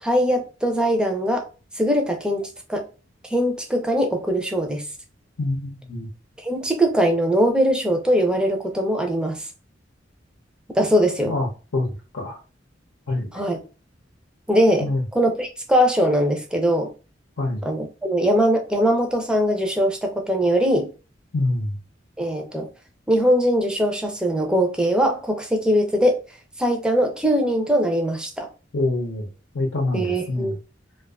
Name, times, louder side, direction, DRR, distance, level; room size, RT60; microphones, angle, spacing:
voice 1, 0.0-1.5 1.8-2.8 3.3-4.9 6.4-9.5 10.8-11.3 13.3-13.6 14.5-16.9 17.6-20.9 22.2-22.7 23.1-26.2 26.6-28.5 29.9-30.5, equal, 5° right, 0.4 m, -21 dB
voice 2, 5.4-6.1 11.3-12.4 13.1-13.3 14.8-15.0 17.4-17.6 21.3-21.8 28.7-29.3 29.5-30.6, left 2 dB, 90° left, 0.7 m, -25 dB
2.5 x 2.3 x 2.3 m
head